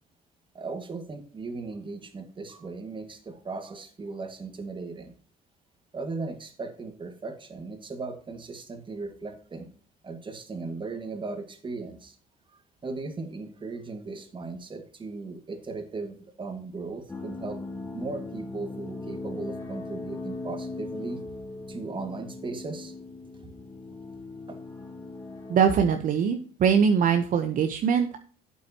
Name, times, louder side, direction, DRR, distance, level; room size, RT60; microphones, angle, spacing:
voice 1, 0.5-5.1 5.9-9.7 10.0-12.2 12.8-17.6 17.9-21.2 21.7-22.9 24.5-24.6, right 3 dB, 30° right, 7 dB, 1.9 m, -37 dB
sound 1, 17.1-25.9, left 2 dB, 15° left, 3.0 m, -39 dB
voice 2, 25.5-28.2, right 7 dB, 55° right, 6 dB, 1.0 m, -22 dB
12.0 x 8.4 x 2.9 m, 0.43 s
cardioid pair, 110°, 17 cm